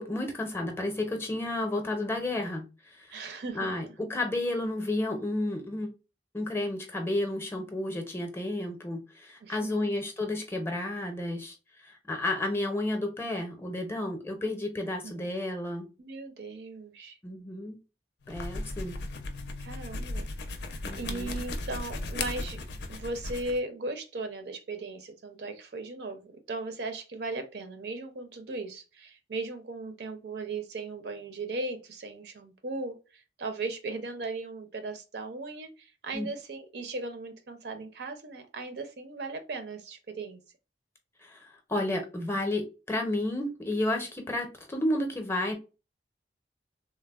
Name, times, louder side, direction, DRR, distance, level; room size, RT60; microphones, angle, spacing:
voice 1, 0.0-5.9 6.3-15.9 17.2-17.8 18.3-19.0 20.8-21.3 36.1-36.3 41.2-45.5, left 1 dB, 15° left, 0.5 m, -32 dB
voice 2, 3.1-3.7 9.4-9.7 15.0-15.3 16.0-17.2 19.6-20.3 21.0-22.6 22.9-40.4, right 3 dB, 65° right, 0.5 m, -37 dB
sound 1, 18.2-23.6, left 2 dB, 70° left, 0.5 m, -36 dB
3.2 x 2.0 x 2.3 m
head